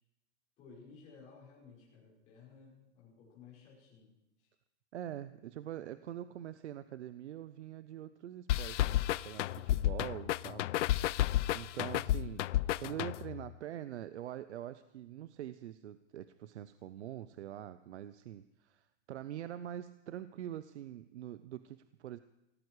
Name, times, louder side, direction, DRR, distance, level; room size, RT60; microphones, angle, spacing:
voice 1, 0.6-4.1 4.4-4.5, left 5 dB, 20° left, -5 dB, 5.7 m, -56 dB
voice 2, 4.9-22.2, right 11 dB, 70° right, 13 dB, 0.8 m, -44 dB
sound 1, 8.5-13.5, left 14 dB, 85° left, 0.5 m, -32 dB
18.0 x 17.0 x 4.8 m, 0.89 s
supercardioid pair, 175°, 35 cm